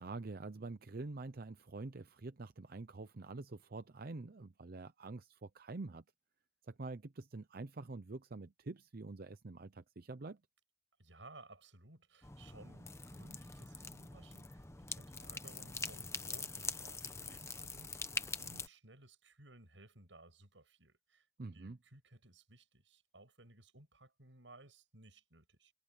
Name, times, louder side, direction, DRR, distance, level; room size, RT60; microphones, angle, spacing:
voice 1, 0.0-6.0 6.6-10.4 21.4-21.8, right 3 dB, 55° right, 0.7 m, -46 dB
voice 2, 11.0-18.1 18.4-21.3 21.5-25.7, right 2 dB, 85° right, 7.5 m, -59 dB
sound 1, 12.2-18.7, left 4 dB, 15° left, 1.1 m, -44 dB
head